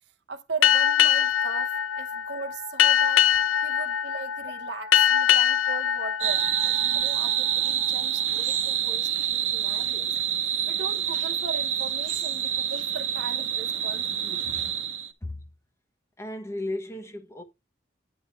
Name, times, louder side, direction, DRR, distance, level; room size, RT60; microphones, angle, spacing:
voice 1, 0.3-3.2 3.6-10.1 10.4-14.4, right 4 dB, 60° right, 0.9 m, -39 dB
Boat Water vehicle, 0.6-7.7, left 10 dB, 90° left, 0.6 m, -23 dB
sound 1, 6.2-15.1, right 10 dB, 80° right, 1.2 m, -27 dB
voice 2, 16.2-17.4, left 1 dB, 15° left, 1.1 m, -35 dB
9.9 x 3.9 x 5.5 m
head